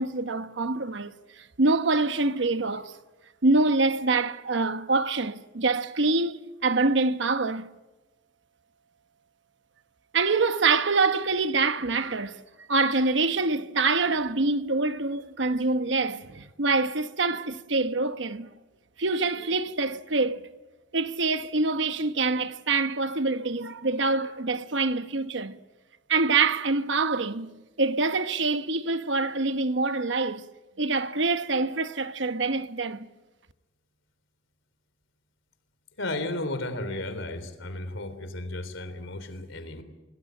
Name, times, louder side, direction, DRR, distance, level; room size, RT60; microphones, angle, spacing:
voice 1, 0.0-3.0 3.4-7.7 10.1-12.4 12.7-18.5 19.0-20.5 20.9-25.6 26.1-27.5 27.8-30.5 30.8-33.1, right 3 dB, 65° right, 1.1 m, -25 dB
voice 2, 36.0-39.8, left 2 dB, 80° left, 3.5 m, -34 dB
27.5 x 19.0 x 9.1 m
head